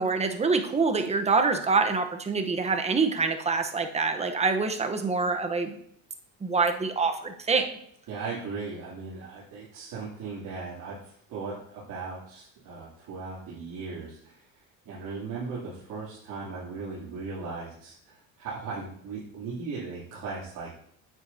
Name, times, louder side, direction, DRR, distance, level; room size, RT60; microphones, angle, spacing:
voice 1, 0.0-5.7 6.4-7.7, right 4 dB, 20° right, 6 dB, 1.0 m, -25 dB
voice 2, 8.1-14.4 14.8-20.7, right 4 dB, 60° right, -9 dB, 3.0 m, -37 dB
9.5 x 8.1 x 2.8 m, 0.68 s
supercardioid pair, 105°, 35 cm